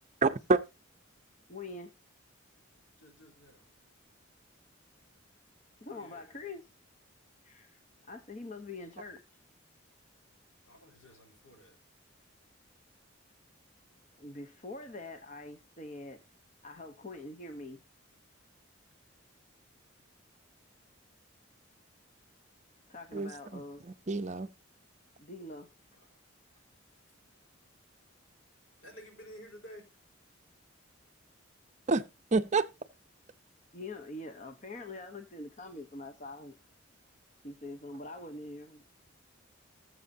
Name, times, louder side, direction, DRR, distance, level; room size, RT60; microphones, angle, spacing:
voice 1, 0.2-0.6 23.1-24.5 31.9-32.0 32.3-32.7, right 3 dB, 35° right, 0.5 m, -28 dB
voice 2, 1.5-1.9 5.8-6.7 7.4-7.8 8.1-9.2 14.2-16.2 16.6-17.8 22.9-23.8 25.2-25.7 33.7-36.5 37.4-38.8, left 2 dB, 35° left, 0.9 m, -44 dB
voice 3, 3.0-3.7 5.9-6.4 10.6-11.8 25.9-26.1 26.9-27.0 28.8-29.9, equal, 75° left, 4.1 m, -53 dB
18.5 x 7.5 x 2.7 m
head